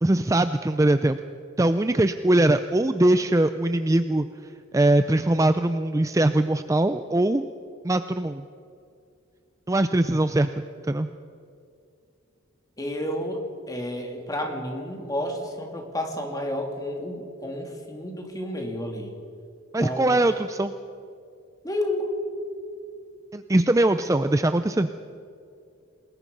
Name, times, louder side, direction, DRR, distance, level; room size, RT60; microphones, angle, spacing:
voice 1, 0.0-1.2 1.6-4.3 4.7-7.5 7.8-8.4 9.7-11.1 19.7-20.7 23.3-24.9, right 1 dB, 15° right, 10 dB, 0.4 m, -21 dB
voice 2, 12.8-13.4 13.7-19.1 19.8-20.2 21.6-22.2, left 1 dB, 15° left, 2 dB, 2.9 m, -31 dB
28.0 x 21.0 x 5.5 m, 2.5 s
head